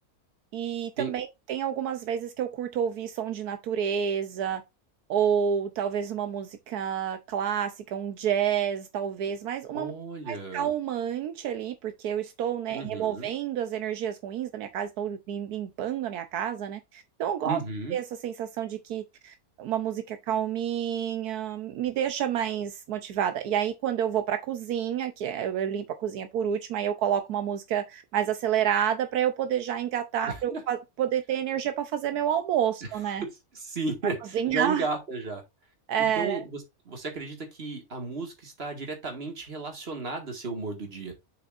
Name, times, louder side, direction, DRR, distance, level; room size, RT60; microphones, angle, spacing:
voice 1, 0.5-4.6 5.1-9.9 10.3-17.6 17.9-33.2 34.3-34.9 35.9-36.4, right 9 dB, 80° right, 1.3 m, -29 dB
voice 2, 9.7-10.7 12.7-13.3 17.4-18.0 30.3-30.6 33.2-35.4 36.0-41.1, right 3 dB, 40° right, 2.2 m, -34 dB
7.2 x 5.6 x 2.5 m
omnidirectional pair, 1.6 m